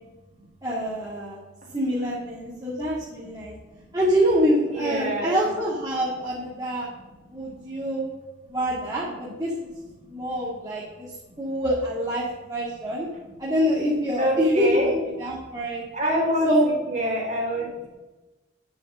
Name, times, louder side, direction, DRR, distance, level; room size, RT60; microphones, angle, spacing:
voice 1, 0.6-1.4 1.7-3.5 3.9-6.9 7.3-8.1 8.5-9.7 10.1-11.1 11.4-13.1 13.4-15.8 16.4-16.7, equal, 20° right, -7 dB, 2.0 m, -25 dB
voice 2, 4.7-5.5 14.2-15.0 15.9-17.9, equal, 35° right, -2 dB, 3.5 m, -26 dB
10.5 x 7.0 x 7.3 m, 1.1 s
head